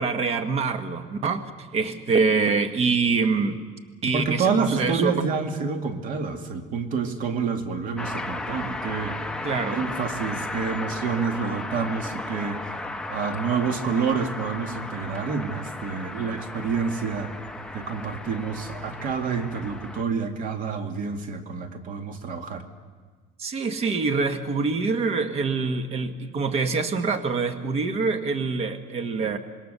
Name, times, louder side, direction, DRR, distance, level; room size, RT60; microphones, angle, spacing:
voice 1, 0.0-3.6 4.0-5.1 9.4-9.8 23.4-29.4, right 4 dB, 35° right, 8 dB, 1.5 m, -25 dB
voice 2, 4.1-9.2 9.7-12.6 13.1-17.3 17.7-22.6, right 5 dB, 55° right, 5 dB, 2.3 m, -28 dB
sound 1, 8.0-20.0, left 2 dB, 5° left, 0.9 m, -35 dB
26.0 x 21.0 x 6.8 m, 1.4 s
cardioid pair, 145°, 17 cm